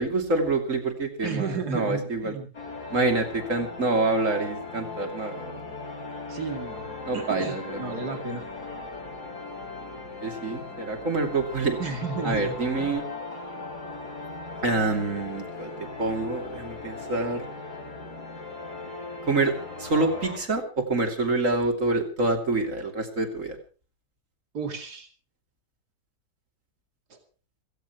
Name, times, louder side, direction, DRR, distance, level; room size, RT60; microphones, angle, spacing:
voice 1, 0.0-2.3 2.9-5.6 7.1-7.8 10.2-11.8 12.2-13.0 14.6-15.7 16.0-17.4 19.3-19.5 19.8-23.6, right 3 dB, 50° right, 4 dB, 3.2 m, -26 dB
voice 2, 1.2-2.5 6.3-8.4 11.8-13.0 24.5-25.1 27.1-27.2, right 4 dB, 85° right, 5 dB, 3.0 m, -33 dB
sound 1, 2.5-20.4, left 3 dB, 85° left, 5.1 m, -38 dB
16.5 x 16.0 x 4.6 m, 0.37 s
omnidirectional pair, 1.7 m